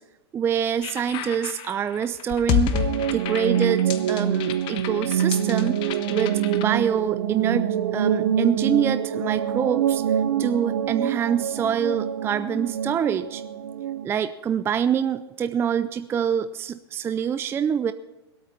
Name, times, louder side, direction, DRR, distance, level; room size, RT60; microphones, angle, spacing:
voice 1, 0.3-2.7 3.1-5.8 6.1-10.0 10.4-13.4 14.0-17.9, right 8 dB, 15° right, 11 dB, 0.4 m, -25 dB
sound 1, 0.8-6.6, left 11 dB, 35° left, 1.1 m, -30 dB
sound 2, 2.7-14.1, right 9 dB, 65° right, 1.0 m, -25 dB
21.5 x 8.7 x 4.2 m, 1.1 s
hypercardioid pair, 115°, 14 cm